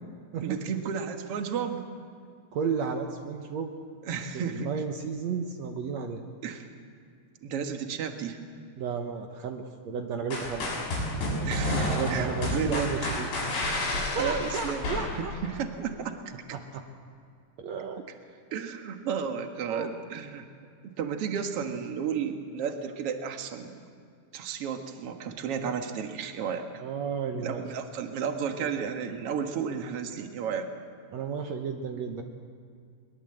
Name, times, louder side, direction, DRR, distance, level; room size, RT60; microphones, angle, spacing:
voice 1, 0.4-1.9 4.0-4.7 6.4-6.7 7.4-8.4 11.4-12.9 14.2-16.2 18.5-20.5 21.0-23.8 24.3-26.7 27.3-30.7, right 7 dB, 60° right, 5 dB, 1.5 m, -33 dB
voice 2, 2.5-3.7 4.5-6.2 8.8-10.7 11.9-13.3 14.1-15.3 16.5-16.8 17.6-18.0 19.7-19.9 26.8-27.6 31.1-32.2, right 6 dB, 80° right, 4 dB, 1.5 m, -33 dB
sound 1, 10.3-15.6, left 1 dB, 90° left, 8.4 m, -30 dB
23.0 x 22.0 x 7.9 m, 2.3 s
omnidirectional pair, 4.9 m